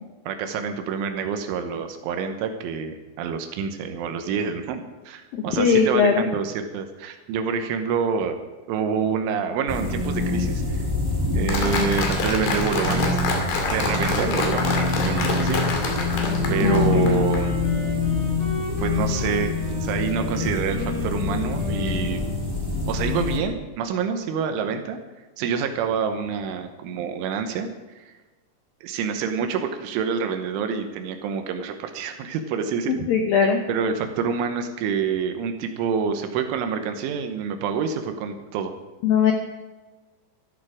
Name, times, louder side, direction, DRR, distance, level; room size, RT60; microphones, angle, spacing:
voice 1, 0.3-8.4 8.7-10.9 11.3-13.2 13.7-15.6 16.5-17.6 18.8-22.2 22.9-25.0 25.4-27.7 28.0-28.1 28.8-33.0 33.7-38.7, right 6 dB, 80° right, 7 dB, 3.4 m, -27 dB
voice 2, 5.3-6.2 16.6-17.1 32.9-33.6 39.0-39.3, left 6 dB, 80° left, 4 dB, 2.0 m, -20 dB
sound 1, 9.7-23.4, left 3 dB, 30° right, 0.4 m, -25 dB
Applause, 11.5-17.4, left 4 dB, 60° left, 4.1 m, -27 dB
Wind instrument woodwind instrument, 16.0-22.7, left 1 dB, 40° left, 4.3 m, -35 dB
14.0 x 13.0 x 4.9 m, 1.2 s
omnidirectional pair, 5.6 m